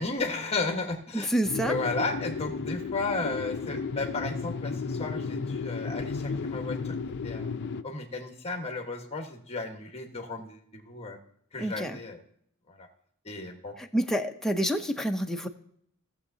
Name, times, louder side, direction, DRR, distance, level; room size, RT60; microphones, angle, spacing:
voice 1, 0.0-1.4 1.7-6.9 7.2-7.5 7.8-11.2 11.5-12.2 12.7-12.9 13.2-13.7, left 3 dB, 30° left, 4 dB, 1.3 m, -34 dB
voice 2, 1.1-1.8 11.6-12.0 13.8-15.5, equal, ahead, 4 dB, 0.6 m, -28 dB
sound 1, 1.4-7.8, left 4 dB, 50° left, 0.4 m, -33 dB
17.5 x 7.1 x 2.7 m, 0.69 s
head